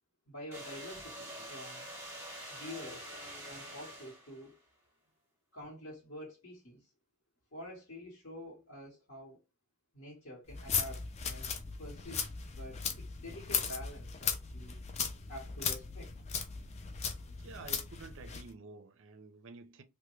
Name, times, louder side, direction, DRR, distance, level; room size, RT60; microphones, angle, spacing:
voice 1, 0.3-1.9 2.5-3.1 3.4-4.6 5.5-6.9 7.5-9.4 9.9-11.5 11.8-14.8 15.3-16.1, left 1 dB, 55° left, 1.0 m, -48 dB
sound 1, 0.5-4.5, right 1 dB, 10° right, 0.9 m, -46 dB
sound 2, 10.5-18.5, left 6 dB, 30° left, 0.4 m, -37 dB
voice 2, 17.4-19.8, right 4 dB, 55° right, 0.5 m, -50 dB
3.3 x 2.1 x 3.1 m
head